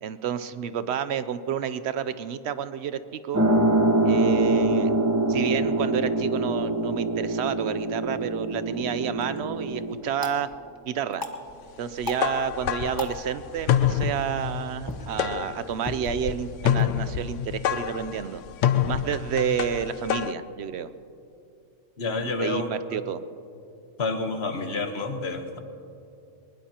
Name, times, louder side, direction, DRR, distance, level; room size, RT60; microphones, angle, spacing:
voice 1, 0.0-3.5 4.0-4.9 5.3-10.5 10.9-11.2 11.8-18.4 18.9-20.9 22.4-23.2, right 8 dB, 65° right, 13 dB, 0.8 m, -30 dB
sound 1, 3.3-9.9, right 2 dB, 15° right, 1.1 m, -24 dB
sound 2, 9.1-19.1, left 2 dB, 20° left, 1.0 m, -40 dB
sound 3, 12.0-20.3, left 10 dB, 75° left, 0.9 m, -27 dB
voice 2, 22.0-22.7 24.0-25.6, left 3 dB, 55° left, 6 dB, 1.4 m, -29 dB
21.0 x 20.5 x 2.9 m, 2.6 s
omnidirectional pair, 1.3 m